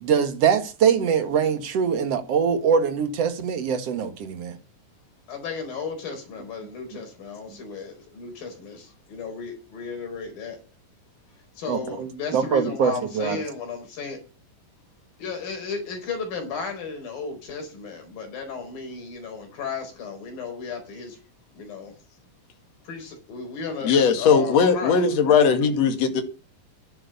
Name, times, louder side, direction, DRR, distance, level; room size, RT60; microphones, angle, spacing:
voice 1, 0.0-4.6 11.7-13.4, right 7 dB, 50° right, 2.3 m, -23 dB
voice 2, 5.3-10.6 11.6-14.2 15.2-21.2 21.6-21.9 22.8-25.5, left 5 dB, 80° left, 6.1 m, -34 dB
voice 3, 23.8-26.2, left 6 dB, 50° left, 3.0 m, -19 dB
11.0 x 11.0 x 6.8 m
omnidirectional pair, 4.0 m